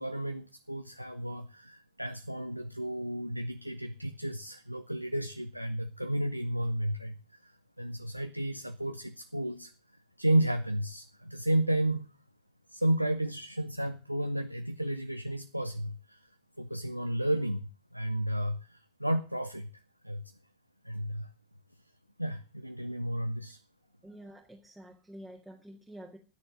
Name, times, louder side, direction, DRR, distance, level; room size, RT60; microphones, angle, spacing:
voice 1, 0.0-9.7 10.2-12.1 12.7-16.3 16.6-19.7 20.0-20.2 20.8-21.3 22.2-23.6, right 1 dB, 90° right, 9 dB, 0.7 m, -32 dB
voice 2, 24.0-26.2, equal, 5° right, -2 dB, 1.8 m, -48 dB
11.5 x 6.5 x 8.8 m, 0.37 s
figure-of-eight pair, 90°, 0 cm